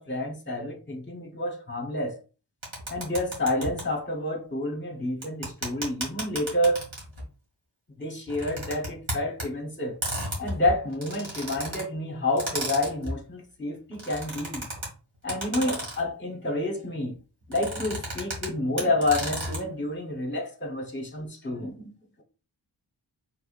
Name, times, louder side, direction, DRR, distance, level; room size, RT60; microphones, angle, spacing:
voice 1, 0.0-2.2 2.9-6.9 8.0-10.0 10.4-14.7 15.2-17.2 17.5-21.9, left 1 dB, 25° left, 1.2 m, -29 dB
sound 1, 2.6-3.8 5.2-7.2 8.3-9.4 10.0-11.8 12.4-13.1 13.9-14.9 15.3-16.1 17.5-18.5 18.8-19.6, right 1 dB, 80° right, 2.0 m, -33 dB
4.7 x 3.5 x 2.5 m
wide cardioid pair, 70°, 46 cm